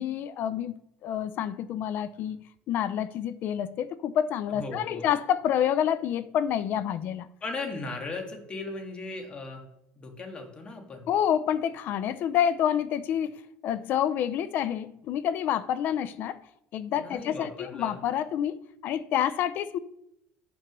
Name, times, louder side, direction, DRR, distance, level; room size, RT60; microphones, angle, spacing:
voice 1, 0.0-7.3 11.1-16.4 16.7-19.8, left 9 dB, 45° left, 0.5 m, -28 dB
voice 2, 4.5-5.1 7.4-9.7 10.0-11.1 17.0-18.0, left 3 dB, 25° left, 1.8 m, -37 dB
8.1 x 6.1 x 6.0 m
cardioid pair, 145°, 4 cm